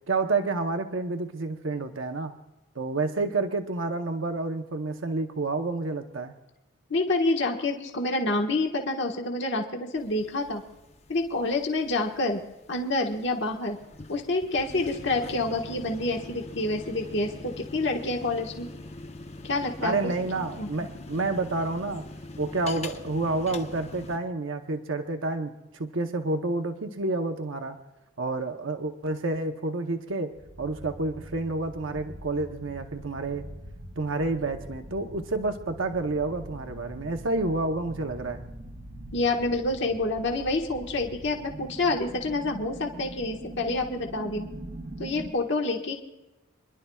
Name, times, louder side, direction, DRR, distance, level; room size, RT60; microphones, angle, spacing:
voice 1, 0.1-2.3 2.7-6.3 19.8-22.1 22.4-27.8 28.2-30.3 30.6-33.4 34.0-38.4, right 3 dB, 70° right, 5 dB, 0.9 m, -29 dB
voice 2, 6.9-10.6 11.1-12.4 12.7-13.8 14.1-18.7 19.4-20.0 20.3-20.7 39.1-44.5 45.0-45.9, left 2 dB, 55° left, 2 dB, 1.4 m, -28 dB
sound 1, 10.0-24.2, left 2 dB, 30° left, 0.8 m, -43 dB
sound 2, 30.3-45.3, right 1 dB, 35° right, 0.9 m, -43 dB
27.0 x 11.5 x 2.3 m, 0.99 s
head